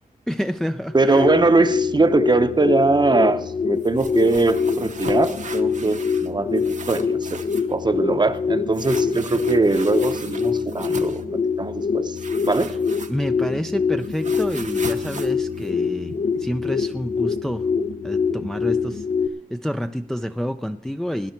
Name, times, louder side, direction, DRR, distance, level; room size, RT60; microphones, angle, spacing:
voice 1, 0.3-1.3 12.7-12.8 13.1-16.1 16.4-17.6 18.0-19.1 19.5-21.3, equal, 5° left, 7 dB, 0.4 m, -28 dB
sound 1, 0.9-19.3, left 5 dB, 55° left, 0.7 m, -25 dB
voice 2, 0.9-7.4 7.7-11.2 11.6-12.2 12.4-12.7, right 3 dB, 30° right, 11 dB, 0.8 m, -21 dB
sound 2, 3.8-6.3 6.6-7.7 8.7-11.2 12.2-13.5 13.7-16.4, right 4 dB, 55° right, 1.0 m, -38 dB
17.5 x 10.5 x 4.5 m, 0.72 s
wide cardioid pair, 100°, 15 cm